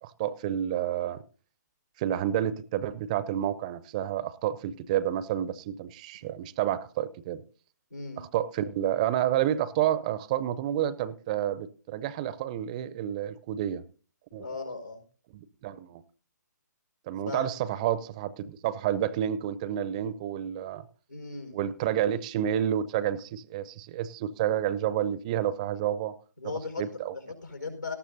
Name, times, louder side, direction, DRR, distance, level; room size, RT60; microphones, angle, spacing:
voice 1, 0.0-1.2 2.0-7.4 8.2-13.8 14.3-14.5 15.3-16.0 17.1-20.8 21.5-26.1 26.4-26.5 26.8-27.1, right 11 dB, 25° right, 0.5 m, -29 dB
voice 2, 7.9-8.2 14.4-15.0 17.2-17.5 21.1-21.6 26.4-26.8 27.1-27.9, left 4 dB, 85° left, 4.8 m, -37 dB
18.5 x 13.5 x 2.7 m
figure-of-eight pair, 135°, 10 cm